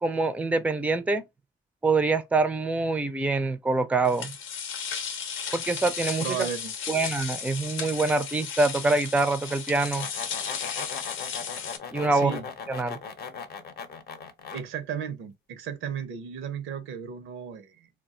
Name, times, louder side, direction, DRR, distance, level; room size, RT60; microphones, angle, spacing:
voice 1, 0.0-1.2 1.8-4.3 5.5-6.3 6.9-10.1 11.9-12.4 12.7-13.0, right 3 dB, 5° right, 0.4 m, -25 dB
sound 1, 4.0-11.8, left 7 dB, 85° left, 0.7 m, -35 dB
voice 2, 6.2-6.7 12.1-12.5 14.5-17.9, right 8 dB, 90° right, 0.7 m, -34 dB
sound 2, 9.7-14.6, left 5 dB, 50° left, 0.7 m, -38 dB
2.3 x 2.2 x 3.7 m
cardioid pair, 90°, 20 cm